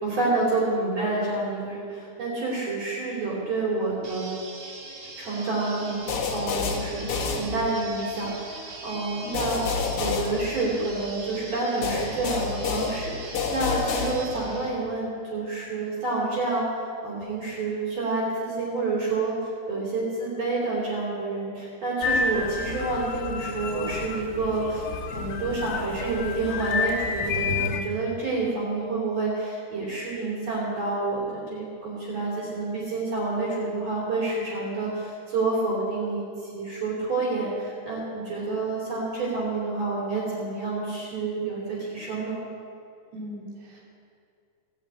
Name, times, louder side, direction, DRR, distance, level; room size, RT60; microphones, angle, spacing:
voice 1, 0.0-4.3 5.2-6.0 6.3-9.6 9.9-16.7 17.0-24.9 25.1-42.4, right 3 dB, 40° right, -9 dB, 4.1 m, -28 dB
sound 1, 4.0-14.7, right 3 dB, 65° right, 3.7 m, -41 dB
sound 2, 6.1-8.0 9.3-11.1 11.8-14.6, left 5 dB, 55° left, 2.4 m, -29 dB
sound 3, 22.0-27.8, left 4 dB, 85° left, 3.0 m, -30 dB
voice 2, 28.3-28.7 43.1-43.8, right 2 dB, 85° right, -4 dB, 5.1 m, -37 dB
16.5 x 6.5 x 8.7 m, 2.4 s
omnidirectional pair, 4.6 m